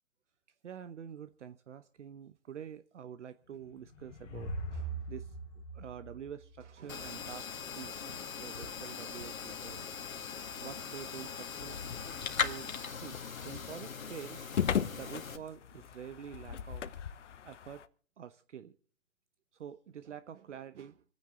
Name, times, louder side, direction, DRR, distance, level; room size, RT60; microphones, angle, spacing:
voice 1, 0.6-9.9 10.6-11.8 12.4-13.2 13.4-14.4 14.9-16.8 17.4-17.8 18.2-18.7 19.5-21.0, right 9 dB, 60° right, 0.9 m, -47 dB
sound 1, 3.5-7.0, right 2 dB, 25° left, 2.2 m, -41 dB
sound 2, 6.9-15.4, left 6 dB, 80° left, 1.9 m, -40 dB
sound 3, 11.6-17.9, left 9 dB, 60° left, 1.0 m, -38 dB
27.5 x 9.6 x 3.8 m
hypercardioid pair, 150°, 40 cm